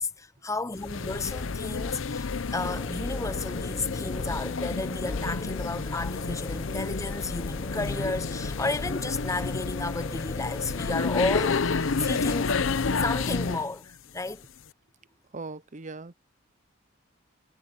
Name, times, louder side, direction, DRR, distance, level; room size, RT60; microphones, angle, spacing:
voice 1, 0.0-12.5 13.0-14.5, left 3 dB, 15° left, 0.7 m, -33 dB
sound 1, 0.8-13.7, left 4 dB, 70° left, 0.7 m, -30 dB
sound 2, 2.6-10.9, left 1 dB, 30° left, 2.5 m, -41 dB
voice 2, 15.3-16.1, right 3 dB, 35° right, 0.7 m, -39 dB
head